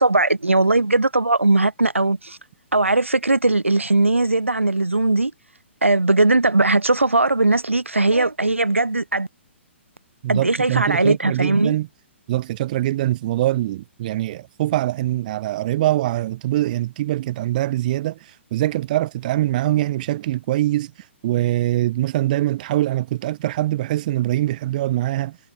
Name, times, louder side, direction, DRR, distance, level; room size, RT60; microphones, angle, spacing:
voice 1, 0.0-2.4 2.7-5.3 5.8-9.3 10.3-11.8, right 2 dB, 90° right, 0.8 m, -19 dB
voice 2, 10.2-11.9 12.3-18.2 18.5-20.9 21.2-25.4, right 15 dB, 40° right, 0.7 m, -23 dB
figure-of-eight pair, 125°, 7 cm